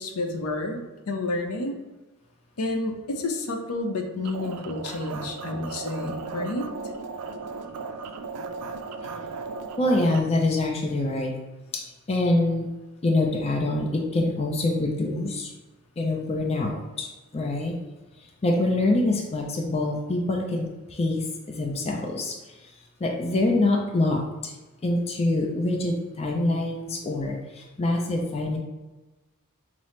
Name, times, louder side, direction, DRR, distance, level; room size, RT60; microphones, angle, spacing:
voice 1, 0.0-1.7 2.6-6.7, left 2 dB, 75° left, 3 dB, 0.6 m, -30 dB
sound 1, 4.2-10.2, right 4 dB, 75° right, 0.3 m, -36 dB
voice 2, 9.8-11.3 11.7-12.7 13.0-15.5 16.0-17.8 18.2-22.6 23.0-24.6 24.8-28.6, left 2 dB, 30° left, 1 dB, 0.4 m, -25 dB
5.6 x 2.0 x 3.1 m, 1.1 s
head